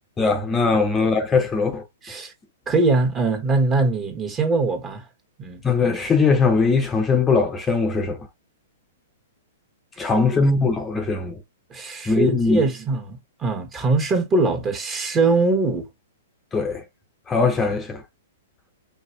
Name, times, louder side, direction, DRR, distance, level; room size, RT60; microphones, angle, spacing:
voice 1, 0.2-1.8 5.6-8.2 10.0-11.4 12.1-12.6 16.5-16.8 17.3-18.0, left 4 dB, 15° left, 0.9 m, -20 dB
voice 2, 0.7-1.1 2.0-2.3 2.7-5.0 5.4-5.6 10.0-10.1 11.7-15.9, right 3 dB, 25° right, 1.7 m, -22 dB
5.2 x 2.8 x 3.2 m
hypercardioid pair, 120°, 0 cm